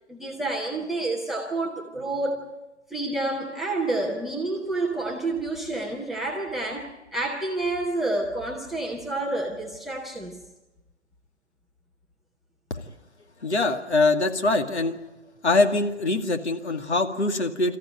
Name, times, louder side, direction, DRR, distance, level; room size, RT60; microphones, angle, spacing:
voice 1, 0.1-2.5 2.9-10.4, right 2 dB, ahead, 0.7 m, -29 dB
voice 2, 13.4-15.0 15.4-17.8, left 2 dB, 70° left, 2.3 m, -23 dB
28.0 x 14.5 x 9.2 m
figure-of-eight pair, 145°, 35 cm